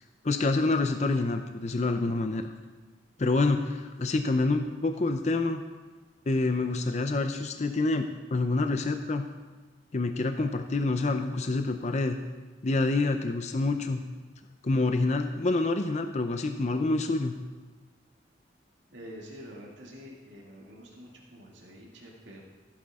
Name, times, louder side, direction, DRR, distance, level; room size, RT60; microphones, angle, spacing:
voice 1, 0.2-2.5 3.2-5.6 6.3-9.3 9.9-12.2 12.6-14.0 14.6-17.4, left 3 dB, 40° left, 7 dB, 0.5 m, -27 dB
voice 2, 18.9-22.4, equal, 85° right, -3 dB, 2.3 m, -47 dB
15.5 x 9.1 x 3.6 m, 1.3 s
head